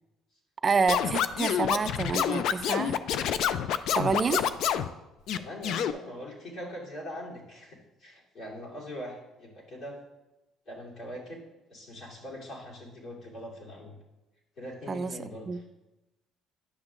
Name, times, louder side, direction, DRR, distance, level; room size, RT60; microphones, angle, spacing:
voice 1, 0.6-3.0 3.9-4.4 14.9-15.1 15.5-15.6, right 5 dB, 35° right, 11 dB, 0.4 m, -28 dB
Scratching (performance technique), 0.9-4.9 5.3-5.9, left 9 dB, 70° left, 0.3 m, -27 dB
voice 2, 5.3-10.0 10.7-11.4 11.7-14.0 14.6-15.6, equal, 55° left, -4 dB, 2.6 m, -42 dB
10.5 x 6.3 x 2.5 m, 1.0 s
cardioid pair, 95°, 0 cm